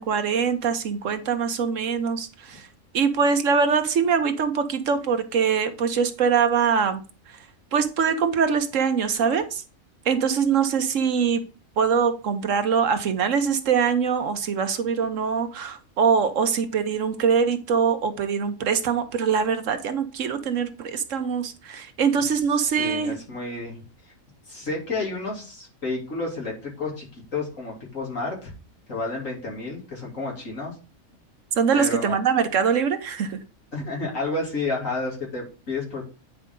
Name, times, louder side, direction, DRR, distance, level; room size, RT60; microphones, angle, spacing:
voice 1, 0.0-2.7 2.9-7.0 7.7-9.6 10.0-11.4 11.8-23.2 31.6-33.4, right 6 dB, 70° right, 9 dB, 1.2 m, -23 dB
voice 2, 22.8-23.8 24.5-28.5 28.9-30.7 31.7-32.2 33.7-36.1, left 3 dB, 70° left, -2 dB, 3.5 m, -31 dB
9.4 x 4.9 x 3.8 m, 0.34 s
omnidirectional pair, 1.4 m